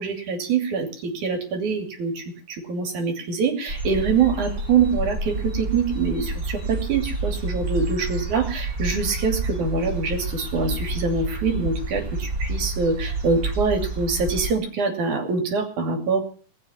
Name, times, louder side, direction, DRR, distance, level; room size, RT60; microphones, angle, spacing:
voice 1, 0.0-16.2, right 5 dB, 70° right, 5 dB, 4.1 m, -24 dB
sound 1, 3.7-14.5, right 2 dB, 35° right, 3.4 m, -29 dB
19.5 x 7.1 x 9.5 m, 0.42 s
omnidirectional pair, 3.7 m